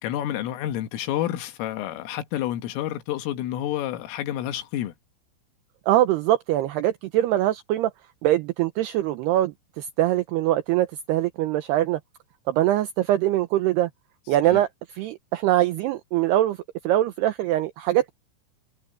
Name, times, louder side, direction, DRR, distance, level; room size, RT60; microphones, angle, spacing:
voice 1, 0.0-4.9 14.4-14.6, left 12 dB, 85° left, 4.1 m, -29 dB
voice 2, 5.9-7.9 8.2-12.0 12.5-13.9 14.3-14.7 14.9-16.6 16.8-18.1, right 14 dB, 80° right, 2.4 m, -23 dB
omnidirectional pair, 5.7 m